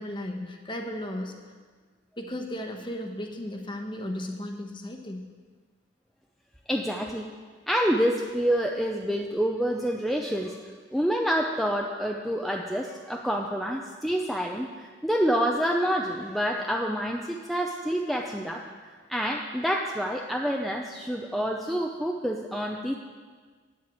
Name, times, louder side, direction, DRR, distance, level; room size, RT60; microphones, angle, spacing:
voice 1, 0.0-1.4 2.2-5.3, left 1 dB, 25° left, 4 dB, 1.1 m, -35 dB
voice 2, 6.7-7.3 7.7-10.6 10.9-18.6 19.1-23.0, equal, ahead, 0 dB, 0.5 m, -27 dB
9.3 x 7.8 x 8.4 m, 1.5 s
head